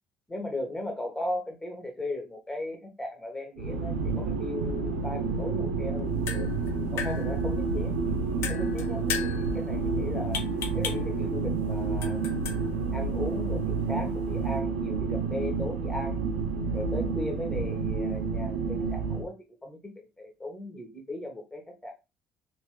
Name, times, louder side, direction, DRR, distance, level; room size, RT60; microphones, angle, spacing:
voice 1, 0.3-6.5 6.9-7.9 8.5-10.4 10.7-12.2 12.9-16.2 16.7-21.9, left 1 dB, 15° left, 1.4 m, -37 dB
sound 1, 3.6-19.2, right 4 dB, 85° right, 0.4 m, -29 dB
sound 2, 6.0-14.6, left 7 dB, 65° left, 0.6 m, -39 dB
3.0 x 3.0 x 3.2 m
hypercardioid pair, 55°, 5 cm